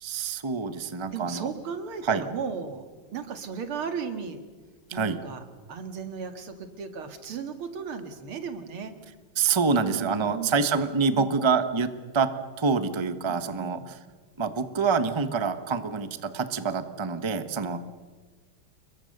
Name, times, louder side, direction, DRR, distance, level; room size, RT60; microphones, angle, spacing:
voice 1, 0.0-1.5 2.0-2.2 4.9-5.2 9.4-12.3 12.6-14.0 14.4-17.8, right 5 dB, 20° right, 10 dB, 0.8 m, -26 dB
voice 2, 1.1-2.8 3.1-4.4 4.9-5.4 5.7-8.9 9.7-10.7 11.1-11.4 13.3-13.9 17.6-17.8, right 6 dB, 85° right, 7 dB, 2.8 m, -35 dB
29.0 x 22.0 x 6.7 m, 1.4 s
omnidirectional pair, 2.3 m